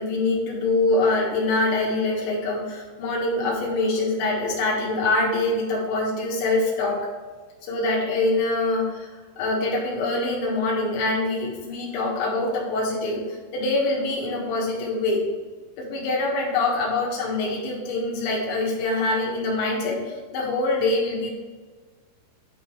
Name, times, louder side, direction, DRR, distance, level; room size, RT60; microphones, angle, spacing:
voice 1, 0.0-7.1 7.6-15.2 15.8-21.3, left 2 dB, 70° left, -3 dB, 3.6 m, -24 dB
9.9 x 3.8 x 4.7 m, 1.4 s
omnidirectional pair, 5.3 m